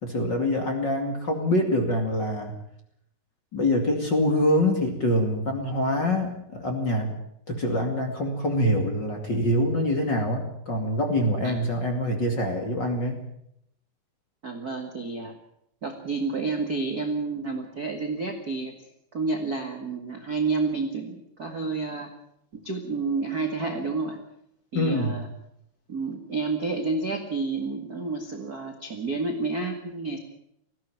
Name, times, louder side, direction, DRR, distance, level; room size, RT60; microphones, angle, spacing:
voice 1, 0.0-2.6 3.5-7.1 7.5-13.2 24.7-25.2, left 1 dB, 30° left, 4 dB, 2.4 m, -25 dB
voice 2, 14.4-15.4 15.8-22.1 22.5-24.2 24.7-25.3 25.9-30.2, right 3 dB, 45° right, 4 dB, 1.2 m, -30 dB
19.0 x 15.5 x 9.1 m, 0.76 s
omnidirectional pair, 4.9 m